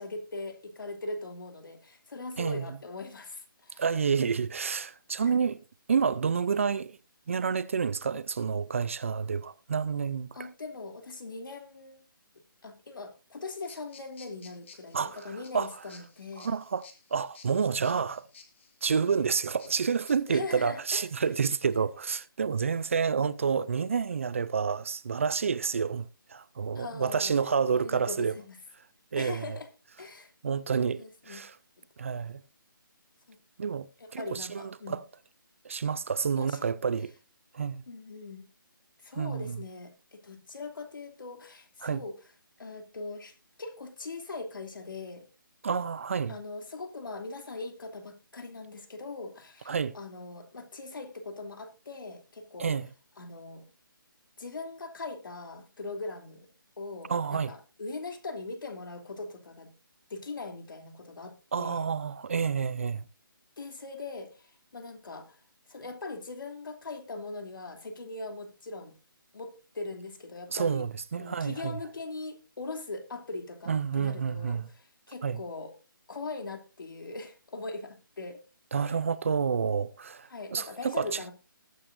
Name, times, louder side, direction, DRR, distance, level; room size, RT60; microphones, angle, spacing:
voice 1, 0.0-3.8 5.2-5.3 10.3-12.0 12.6-16.5 20.3-21.3 26.7-27.3 27.7-28.6 29.2-29.7 30.0-30.3 30.9-31.5 31.8-31.9 33.3-33.4 34.0-35.0 36.3-36.7 37.9-38.5 39.0-42.1 42.6-45.2 46.3-52.8 53.2-53.6 54.4-56.4 56.8-59.7 60.1-61.9 63.6-65.4 65.7-69.0 69.3-70.9 71.2-75.7 76.1-78.4 78.9-79.0 80.3-81.3, left 3 dB, 65° left, 3.0 m, -41 dB
voice 2, 3.8-5.6 5.9-7.0 7.3-10.3 14.9-15.7 16.4-18.3 18.8-28.3 29.1-29.6 30.4-31.5 32.0-32.4 33.6-33.9 34.1-35.0 35.6-37.1 37.5-37.8 39.2-39.6 41.8-42.0 45.6-46.4 49.7-49.9 52.6-52.9 57.1-57.5 61.5-63.0 70.5-71.8 73.7-74.7 75.2-75.4 78.7-81.2, right 6 dB, 35° right, 0.5 m, -29 dB
sound 1, 13.5-20.1, left 5 dB, 35° left, 2.4 m, -55 dB
20.5 x 8.7 x 2.6 m
hypercardioid pair, 170°, 12 cm